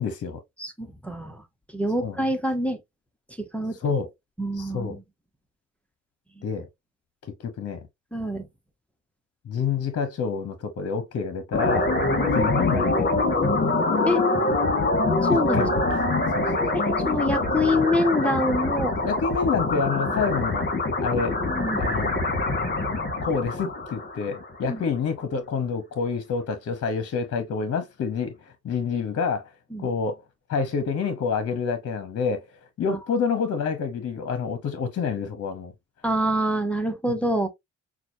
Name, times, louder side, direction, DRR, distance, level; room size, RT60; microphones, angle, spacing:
voice 1, 0.0-0.4 2.0-2.2 3.8-4.1 4.5-5.0 6.4-6.7 7.2-7.9 9.4-11.9 12.3-13.2 15.3-15.8 16.3-16.5 19.0-20.7 21.0-21.4 21.8-22.1 23.2-29.5 29.8-30.2 30.5-32.4 32.8-35.7 37.1-37.2, left 5 dB, 50° left, 1.0 m, -28 dB
voice 2, 0.6-1.4 1.7-2.8 3.4-3.8 4.4-5.0 8.1-8.5 12.1-12.3 14.1-14.2 15.2-15.7 16.7-18.9 21.5-21.8 24.6-24.8 29.7-29.9 32.9-33.0 36.0-37.5, left 1 dB, 5° left, 1.0 m, -26 dB
sound 1, 11.5-24.7, left 2 dB, 35° left, 1.7 m, -24 dB
5.9 x 2.4 x 2.7 m
cardioid pair, 80°, 30 cm